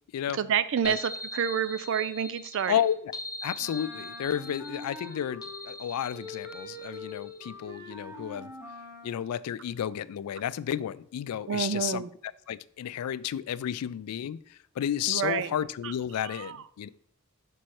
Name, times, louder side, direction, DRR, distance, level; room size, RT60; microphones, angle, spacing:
voice 1, 0.4-2.7 11.5-12.1 15.1-15.5 16.4-16.5, right 8 dB, 60° right, 0.4 m, -28 dB
sound 1, 0.8-7.5, left 1 dB, 20° left, 0.7 m, -42 dB
voice 2, 2.7-3.1 3.4-8.5 9.0-16.9, left 9 dB, 90° left, 0.3 m, -32 dB
Wind instrument woodwind instrument, 3.6-5.8 6.1-9.2, left 2 dB, 15° right, 1.0 m, -43 dB
5.3 x 4.7 x 4.3 m
head